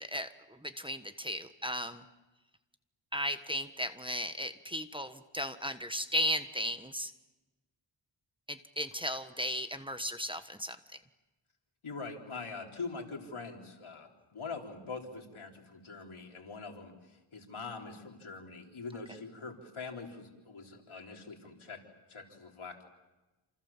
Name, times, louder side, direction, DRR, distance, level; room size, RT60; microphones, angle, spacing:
voice 1, 0.0-2.0 3.1-7.1 8.5-10.8, equal, 10° right, 9 dB, 1.4 m, -35 dB
voice 2, 11.8-21.8 22.1-22.8, left 4 dB, 85° left, 1 dB, 4.2 m, -43 dB
29.0 x 27.5 x 7.4 m, 1.1 s
wide cardioid pair, 80°, 48 cm